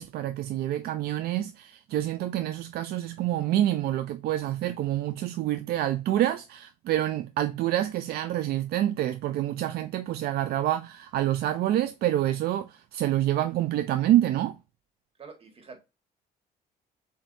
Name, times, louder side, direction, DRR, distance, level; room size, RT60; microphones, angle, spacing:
voice 1, 0.0-14.6, right 13 dB, 65° right, 0.4 m, -27 dB
voice 2, 15.2-15.8, right 5 dB, 35° right, 1.7 m, -46 dB
7.0 x 2.8 x 2.6 m
cardioid pair, 110°, 17 cm